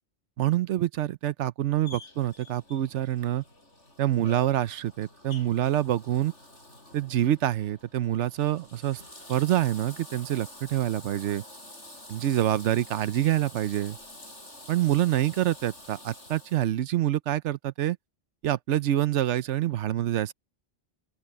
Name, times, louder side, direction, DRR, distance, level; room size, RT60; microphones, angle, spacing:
voice 1, 0.4-3.4 4.0-6.3 6.9-9.0 9.3-11.4 12.1-14.0 14.7-18.0 18.4-20.3, right 12 dB, 80° right, 1.0 m, -26 dB
Bathtub (filling or washing), 1.8-16.7, left 1 dB, 85° left, 7.6 m, -48 dB
open air
omnidirectional pair, 1.2 m